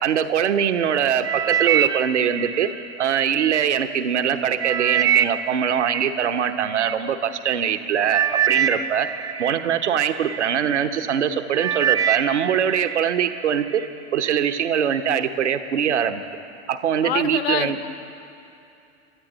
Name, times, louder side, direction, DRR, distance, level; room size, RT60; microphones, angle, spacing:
voice 1, 0.0-2.7 3.0-9.1 9.4-13.8 14.1-16.2 16.7-17.8, right 8 dB, 75° right, 9 dB, 0.9 m, -22 dB
sound 1, 1.2-3.6 4.1-6.9 7.6-7.8 8.1-10.4 11.0-11.2 11.5-13.1 13.4-13.9 14.5-14.6, right 9 dB, 10° right, 0.3 m, -24 dB
voice 2, 17.0-17.9, left 10 dB, 60° left, 11 dB, 0.9 m, -26 dB
24.0 x 13.0 x 4.0 m, 2.7 s
figure-of-eight pair, 90°, 35 cm